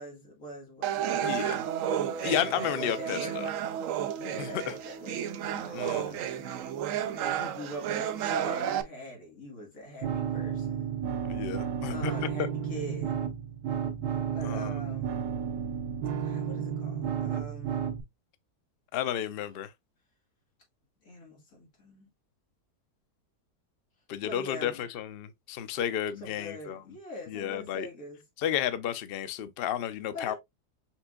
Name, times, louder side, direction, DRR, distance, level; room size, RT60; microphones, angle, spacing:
voice 1, 0.0-2.3 2.8-3.4 4.2-6.5 7.1-11.0 11.9-13.1 14.3-15.2 16.2-17.9 21.0-22.1 24.2-24.9 26.2-28.2 30.1-30.4, equal, 60° left, 2.3 m, -44 dB
sound 1, 0.8-8.8, right 9 dB, 70° right, 0.8 m, -32 dB
voice 2, 1.2-1.6 2.2-3.5 4.4-4.7 5.7-6.2 11.3-12.1 14.4-14.7 18.9-19.7 24.1-26.8 27.3-27.9 28.4-30.3, left 10 dB, 85° left, 0.5 m, -32 dB
sound 2, 10.0-18.0, right 8 dB, 90° right, 1.4 m, -32 dB
5.8 x 3.4 x 2.3 m
omnidirectional pair, 1.7 m